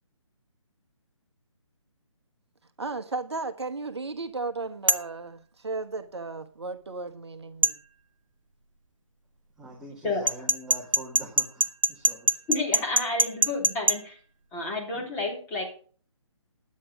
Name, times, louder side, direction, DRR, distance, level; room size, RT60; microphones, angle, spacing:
voice 1, 2.8-7.8, right 3 dB, 55° right, 1.1 m, -35 dB
sound 1, 4.9-5.1 7.6-7.8 10.3-14.0, right 1 dB, 75° right, 1.2 m, -23 dB
voice 2, 9.6-12.4 14.9-15.1, right 1 dB, 5° right, 1.8 m, -44 dB
voice 3, 12.5-14.2 14.5-15.6, left 2 dB, 15° left, 3.4 m, -30 dB
11.0 x 8.4 x 5.2 m
figure-of-eight pair, 145°, 17 cm